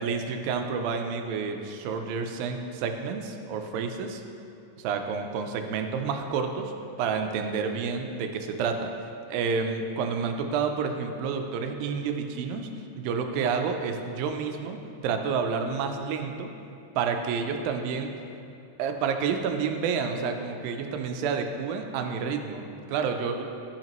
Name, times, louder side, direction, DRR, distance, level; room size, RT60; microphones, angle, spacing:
voice 1, 0.0-4.2 4.8-6.7 7.0-9.0 9.3-12.7 13.0-16.5 17.0-18.2 18.8-23.4, right 5 dB, 85° right, 5 dB, 2.4 m, -29 dB
13.5 x 5.9 x 3.0 m, 2.6 s
omnidirectional pair, 4.1 m